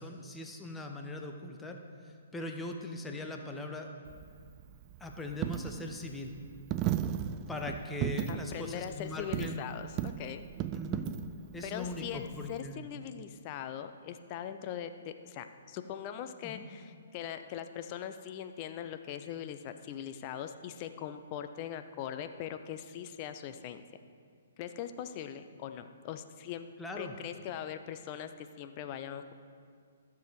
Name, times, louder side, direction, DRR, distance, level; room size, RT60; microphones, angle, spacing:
voice 1, 0.0-1.8 2.0-3.9 5.0-6.3 7.5-9.6 10.7-11.1 11.5-12.9 16.4-16.7 26.8-27.1, left 2 dB, 10° left, 3 dB, 0.9 m, -40 dB
Coin (dropping), 4.1-12.6, right 11 dB, 30° right, 0.3 m, -37 dB
voice 2, 8.3-10.5 11.6-23.8 24.6-26.7 27.0-29.3, left 9 dB, 35° left, 9 dB, 0.6 m, -41 dB
13.5 x 7.1 x 4.7 m, 2.2 s
figure-of-eight pair, 125°, 0 cm